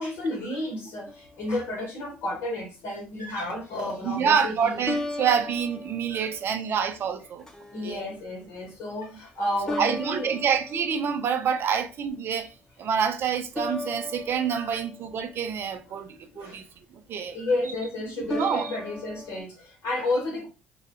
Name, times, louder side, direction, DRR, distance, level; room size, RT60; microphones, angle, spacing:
voice 1, 0.0-4.8 6.1-6.3 7.7-10.3 14.5-14.8 16.3-16.6 17.3-20.5, left 1 dB, 65° left, 0.9 m, -31 dB
sound 1, 1.1-1.9 4.9-6.9 7.5-7.9 9.7-11.6 13.6-16.0 18.3-19.4, left 2 dB, 10° left, 0.7 m, -37 dB
voice 2, 4.0-7.5 7.8-8.0 9.8-16.6 16.9-17.4 17.6-17.7 18.3-18.8, right 7 dB, 50° right, 0.5 m, -27 dB
2.2 x 2.1 x 2.9 m
hypercardioid pair, 55°, 5 cm